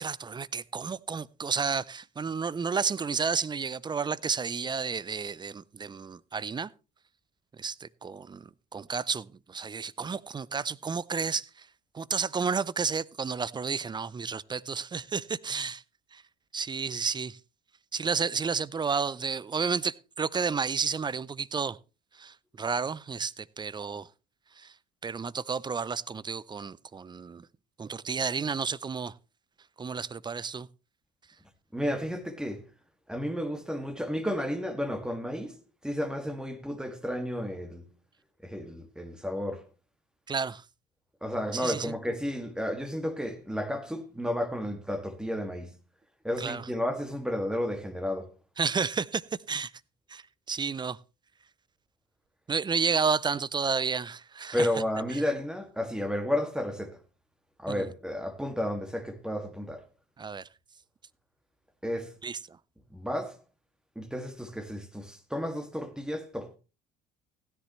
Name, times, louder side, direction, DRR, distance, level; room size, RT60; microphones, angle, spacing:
voice 1, 0.0-6.7 7.6-11.7 11.9-15.8 16.1-16.2 16.5-17.4 17.9-21.8 22.1-24.1 24.6-24.7 25.0-27.5 27.8-29.1 29.8-30.7 40.3-40.6 41.5-41.9 46.4-46.6 48.6-49.7 50.1-50.2 50.5-51.0 52.5-54.7 57.7-57.9 60.2-60.5 62.2-62.6, right 5 dB, 25° right, 0.5 m, -31 dB
voice 2, 31.7-32.6 33.1-37.9 38.4-39.7 41.2-45.7 46.2-48.3 54.5-57.0 57.6-59.9 61.8-62.1 62.9-63.4 64.0-66.6, left 1 dB, 5° right, 2.2 m, -32 dB
16.0 x 10.0 x 3.2 m
hypercardioid pair, 65°, 19 cm